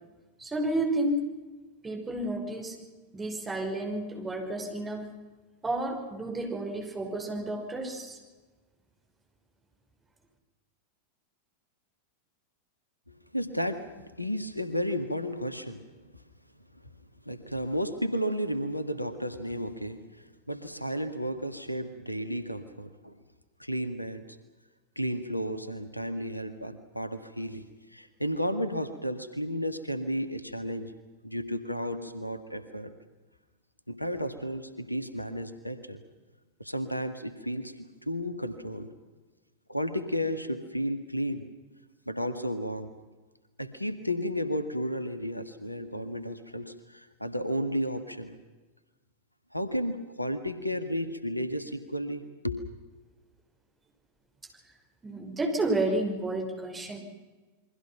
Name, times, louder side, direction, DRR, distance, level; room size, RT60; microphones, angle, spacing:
voice 1, 0.4-1.3 1.8-2.8 3.1-5.1 5.6-8.2 55.0-57.0, right 2 dB, 15° right, 3 dB, 5.7 m, -31 dB
voice 2, 13.1-13.8 14.2-15.8 17.2-23.2 23.6-24.2 24.9-30.9 31.2-32.9 33.9-36.0 36.6-38.9 39.7-41.5 42.0-42.9 43.6-48.4 49.5-52.6, equal, 90° left, 10 dB, 1.8 m, -33 dB
28.5 x 23.0 x 5.9 m, 1.3 s
figure-of-eight pair, 90°, 0 cm